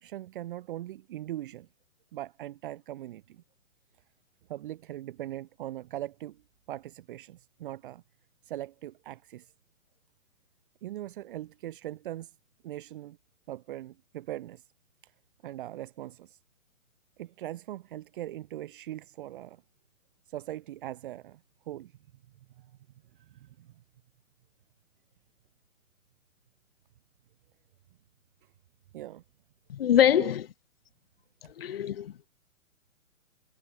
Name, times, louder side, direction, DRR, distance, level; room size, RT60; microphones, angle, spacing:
voice 1, 0.0-1.7 2.1-3.4 4.5-6.4 6.7-8.0 8.4-9.5 10.8-12.4 12.6-13.2 13.5-14.7 15.0-15.1 15.4-16.4 17.2-19.6 20.3-21.9 22.6-22.7 23.1-23.8 28.9-29.2 30.1-30.3, right 14 dB, 40° right, 1.7 m, -40 dB
voice 2, 29.7-30.4 31.6-32.3, left 10 dB, 45° left, 0.6 m, -24 dB
figure-of-eight pair, 130°, 42 cm